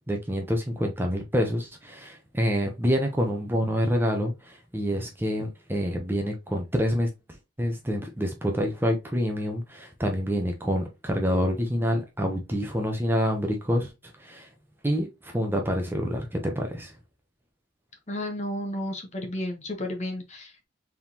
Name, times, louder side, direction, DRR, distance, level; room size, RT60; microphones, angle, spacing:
voice 1, 0.1-7.1 7.6-13.9 14.2-14.5 14.8-16.9, equal, 10° right, 0.8 m, -27 dB
voice 2, 18.1-20.6, left 1 dB, 35° left, 1.1 m, -32 dB
4.6 x 3.7 x 2.9 m
head